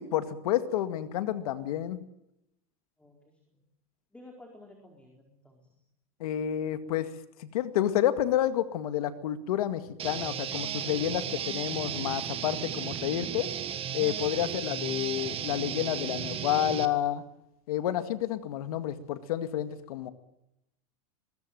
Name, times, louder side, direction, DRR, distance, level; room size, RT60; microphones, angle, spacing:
voice 1, 0.0-2.0 6.2-7.1 7.4-13.5 13.9-17.2 17.7-20.1, left 11 dB, 85° left, 9 dB, 2.1 m, -30 dB
voice 2, 3.0-3.6 4.1-5.8, left 1 dB, 5° left, 1 dB, 4.5 m, -53 dB
sound 1, 10.0-16.9, right 9 dB, 30° right, 1.8 m, -35 dB
23.0 x 21.5 x 9.3 m, 0.85 s
supercardioid pair, 135°, 19 cm